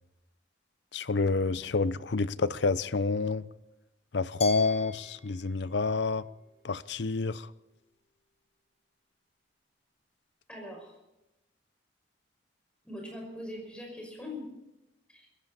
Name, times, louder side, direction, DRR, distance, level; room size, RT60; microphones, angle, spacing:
voice 1, 0.9-3.5 4.1-6.3 6.6-7.5, left 3 dB, 70° left, 0.6 m, -28 dB
Glass, 4.4-7.3, left 3 dB, 35° left, 1.9 m, -46 dB
voice 2, 10.5-11.0 12.8-14.5 15.1-15.3, left 1 dB, 5° left, 5.5 m, -42 dB
21.5 x 16.0 x 4.2 m
head